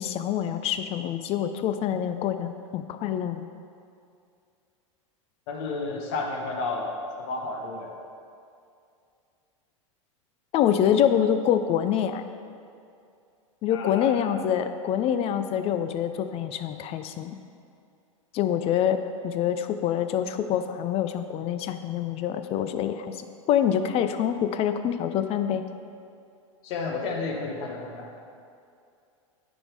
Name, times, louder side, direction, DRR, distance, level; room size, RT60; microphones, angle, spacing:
voice 1, 0.0-3.5 10.5-12.2 13.6-17.4 18.3-25.6, left 9 dB, 35° left, 10 dB, 0.5 m, -26 dB
voice 2, 5.5-7.9 13.7-14.3 26.6-28.1, left 3 dB, 60° left, 1 dB, 1.2 m, -32 dB
9.8 x 3.7 x 4.7 m, 2.5 s
hypercardioid pair, 95°, 17 cm